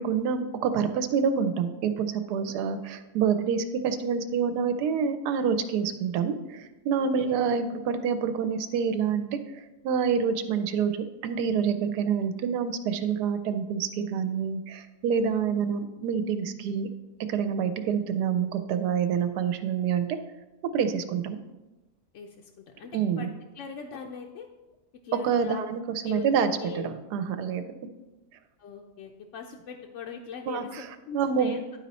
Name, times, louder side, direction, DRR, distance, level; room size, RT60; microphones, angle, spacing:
voice 1, 0.0-9.3 9.8-10.9 11.2-16.9 17.3-20.1 20.7-21.4 22.9-23.3 25.1-27.6 30.5-30.9 31.1-31.6, right 6 dB, 80° right, 9 dB, 1.2 m, -27 dB
voice 2, 2.5-2.8 7.0-7.3 15.1-15.5 22.1-23.3 23.5-24.5 25.0-25.6 26.0-26.9 28.6-31.6, left 6 dB, 65° left, 2 dB, 0.7 m, -41 dB
10.5 x 4.3 x 4.0 m, 1.1 s
omnidirectional pair, 1.7 m